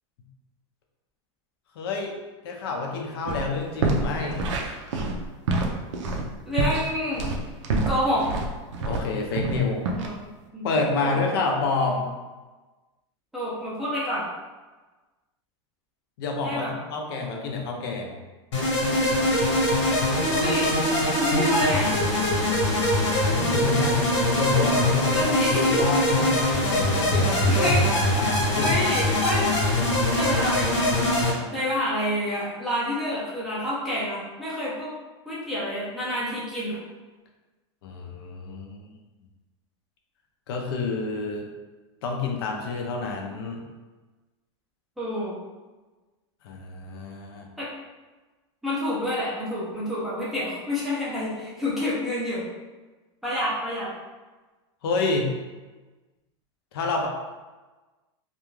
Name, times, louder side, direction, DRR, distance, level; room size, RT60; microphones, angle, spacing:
voice 1, 1.8-2.2 2.4-4.4 8.8-9.8 10.6-12.1 16.2-18.2 23.3-24.1 24.3-27.8 28.2-28.8 37.8-39.0 40.5-41.5 42.0-43.6 46.4-47.5 54.8-55.3 56.7-57.1, left 3 dB, 55° left, 1 dB, 0.5 m, -28 dB
sound 1, 3.3-3.5 3.8-9.1 9.4-10.1, right 3 dB, 75° right, 0.5 m, -26 dB
voice 2, 6.4-7.2 7.9-8.2 10.0-10.1 10.5-10.7 11.0-11.2 13.3-14.2 16.4-16.7 20.3-20.7 21.2-21.9 25.1-25.8 27.5-27.9 28.6-29.5 30.1-34.9 35.3-36.8 45.0-45.4 47.6-47.7 48.6-52.4 53.2-53.9, left 1 dB, ahead, -10 dB, 0.4 m, -28 dB
sound 2, 18.5-31.3, left 1 dB, 70° left, 1.0 m, -22 dB
2.4 x 2.2 x 3.1 m, 1.2 s
supercardioid pair, 170°, 16 cm